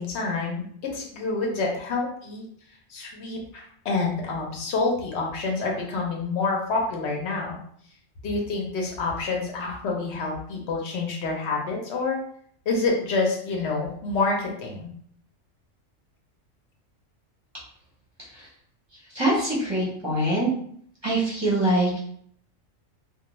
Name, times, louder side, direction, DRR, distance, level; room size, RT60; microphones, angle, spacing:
voice 1, 0.0-2.4 2.9-7.6 8.2-12.2 12.7-14.9, left 3 dB, 65° left, 0 dB, 0.8 m, -27 dB
voice 2, 19.1-20.5 21.0-22.0, right 1 dB, 25° right, -7 dB, 0.6 m, -24 dB
2.3 x 2.2 x 3.0 m, 0.63 s
omnidirectional pair, 1.3 m